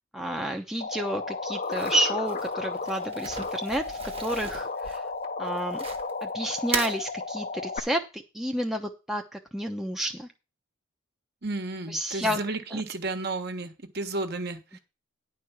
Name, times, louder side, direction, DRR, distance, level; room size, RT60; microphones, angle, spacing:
voice 1, 0.1-5.1 5.4-5.8 6.2-10.3 11.9-12.4 12.7-12.8, right 1 dB, ahead, 2 dB, 0.9 m, -30 dB
sound 1, 0.8-7.8, left 3 dB, 40° left, 0.8 m, -33 dB
Crumpling crinkling, 1.6-6.2 6.6-7.0, right 5 dB, 30° right, 1.4 m, -37 dB
voice 2, 11.4-14.6, right 2 dB, 50° right, 7 dB, 1.5 m, -32 dB
10.5 x 4.8 x 7.3 m, 0.29 s
head